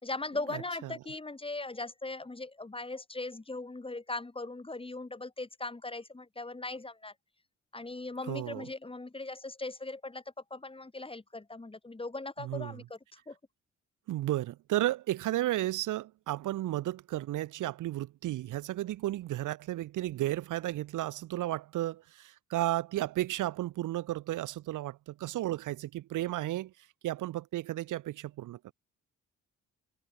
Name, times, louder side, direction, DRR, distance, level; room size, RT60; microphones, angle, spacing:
voice 1, 0.0-7.1 7.7-10.2 10.5-13.4, left 2 dB, 20° left, 5.7 m, -39 dB
voice 2, 0.5-0.9 8.3-8.7 12.4-12.7 14.1-26.7 27.0-28.7, right 15 dB, 85° right, 3.0 m, -33 dB
cardioid pair, 90°, 30 cm